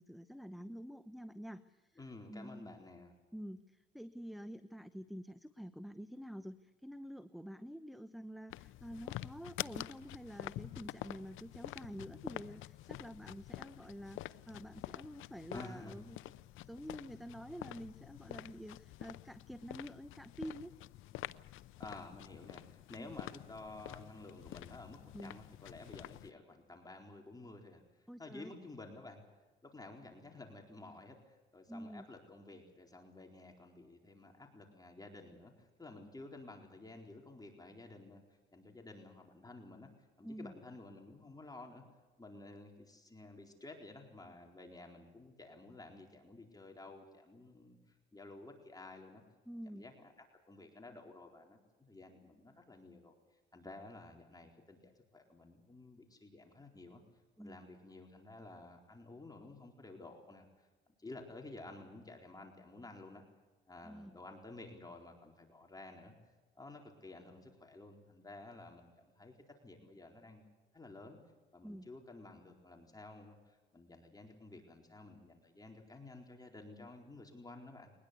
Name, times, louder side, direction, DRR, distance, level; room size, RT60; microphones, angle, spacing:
voice 1, 0.0-2.0 2.3-2.7 3.3-16.2 16.6-20.7 23.0-23.1 25.1-25.4 28.1-28.5 31.7-32.1 40.2-40.5 49.5-49.9 57.4-57.6 63.8-64.2 71.6-71.9, equal, ahead, 12 dB, 0.9 m, -48 dB
voice 2, 2.0-3.1 15.5-16.0 21.8-29.2 29.6-41.8 42.2-49.2 49.7-50.1 50.5-53.1 53.5-57.0 57.4-63.2 63.7-66.1 66.6-69.3 69.6-70.4 70.7-71.2 71.5-77.9, left 2 dB, 20° left, 2 dB, 4.2 m, -52 dB
sound 1, 8.5-26.3, left 15 dB, 85° left, 0.6 m, -48 dB
22.0 x 20.0 x 8.3 m, 1.3 s
cardioid pair, 90°, 20 cm